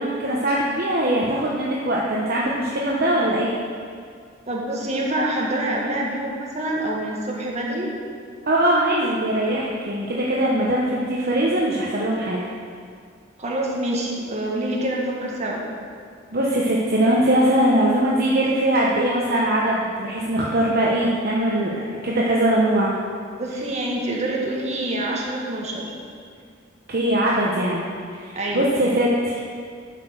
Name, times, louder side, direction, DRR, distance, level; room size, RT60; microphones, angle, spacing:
voice 1, 0.0-3.5 8.5-12.5 16.3-22.9 26.9-29.4, right 1 dB, 50° right, -4 dB, 1.0 m, -21 dB
voice 2, 4.5-7.9 13.4-15.6 23.4-25.9 28.3-28.7, right 1 dB, 35° right, -3 dB, 1.7 m, -26 dB
10.5 x 6.0 x 6.4 m, 2.1 s
head